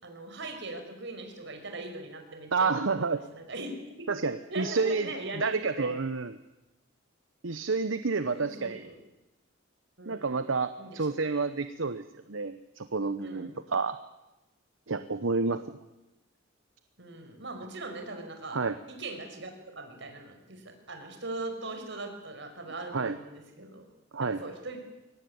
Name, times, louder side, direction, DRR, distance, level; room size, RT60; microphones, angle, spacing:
voice 1, 0.0-3.7 4.5-6.0 8.3-9.0 10.0-10.3 10.8-11.2 13.2-13.6 17.0-18.6 18.9-23.8 24.2-24.8, right 2 dB, 65° right, 5 dB, 5.3 m, -40 dB
voice 2, 2.5-3.2 4.1-5.1 5.4-6.4 7.4-8.8 10.1-12.0 12.3-14.0 14.9-15.8 18.5-18.7 22.9-23.2 24.1-24.4, right 4 dB, 80° right, 11 dB, 1.0 m, -29 dB
23.0 x 18.0 x 9.7 m, 0.99 s
head